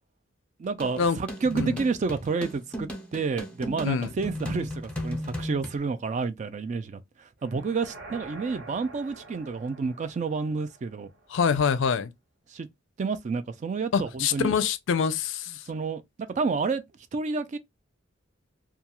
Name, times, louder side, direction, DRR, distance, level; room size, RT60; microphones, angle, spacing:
voice 1, 0.6-11.1 12.5-12.7 13.0-14.5 15.7-16.0 16.4-16.8 17.1-17.6, right 4 dB, 35° right, 0.3 m, -30 dB
sound 1, 0.8-5.8, left 1 dB, 5° left, 0.6 m, -35 dB
sound 2, 7.4-11.5, right 2 dB, 55° right, 0.7 m, -47 dB
voice 2, 11.3-12.1 13.9-15.6, left 6 dB, 65° left, 0.4 m, -25 dB
2.3 x 2.3 x 2.8 m
head